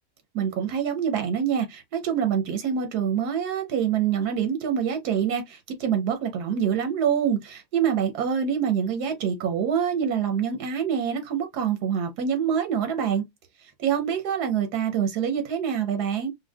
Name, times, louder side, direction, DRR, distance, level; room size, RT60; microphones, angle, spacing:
voice 1, 0.3-13.2 13.8-16.3, right 8 dB, 85° right, 1.3 m, -25 dB
4.4 x 2.2 x 2.2 m
omnidirectional pair, 1.6 m